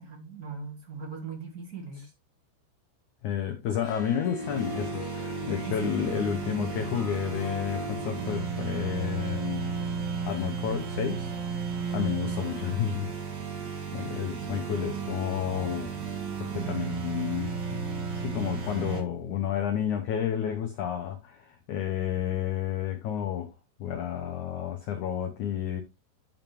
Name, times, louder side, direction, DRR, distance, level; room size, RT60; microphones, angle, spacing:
voice 1, 0.0-2.0 5.3-6.2, right 5 dB, 35° right, 1.5 m, -39 dB
voice 2, 3.2-9.7 10.3-11.3 11.9-13.1 13.9-16.0 16.4-17.8 18.1-23.5 23.8-25.8, left 9 dB, 85° left, 1.7 m, -31 dB
Harp, 3.7-11.1, left 2 dB, 70° left, 1.4 m, -41 dB
sound 1, 4.4-19.0, right 5 dB, 50° right, 2.9 m, -34 dB
12.0 x 5.4 x 3.0 m
omnidirectional pair, 5.0 m